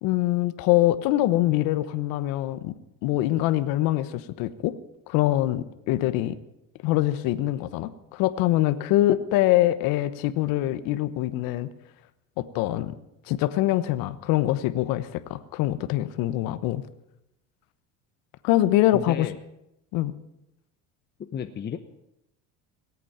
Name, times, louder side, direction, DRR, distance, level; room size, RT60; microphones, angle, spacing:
voice 1, 0.0-2.7 3.0-4.7 5.1-6.3 6.8-11.7 12.4-12.9 13.3-16.8 18.4-19.3 19.9-20.1, left 15 dB, 80° left, 13 dB, 1.1 m, -24 dB
voice 2, 18.9-19.4 21.3-21.8, left 7 dB, 30° left, 6 dB, 0.9 m, -32 dB
18.5 x 8.5 x 8.8 m, 0.86 s
cardioid pair, 115°, 34 cm